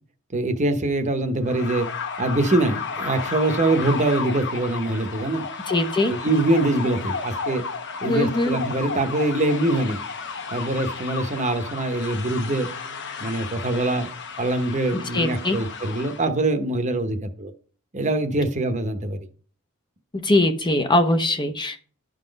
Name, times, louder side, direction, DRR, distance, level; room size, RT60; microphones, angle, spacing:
voice 1, 0.3-1.9 2.2-5.4 6.1-7.6 8.0-10.0 10.5-12.7 13.2-14.1 14.4-17.5 17.9-19.2, right 2 dB, 35° right, 0.9 m, -23 dB
sound 1, 1.4-16.3, left 5 dB, 55° left, 0.9 m, -33 dB
voice 2, 5.7-6.1 8.1-8.5 15.1-15.6 20.2-21.8, left 1 dB, 20° left, 0.7 m, -21 dB
11.5 x 3.9 x 5.1 m
head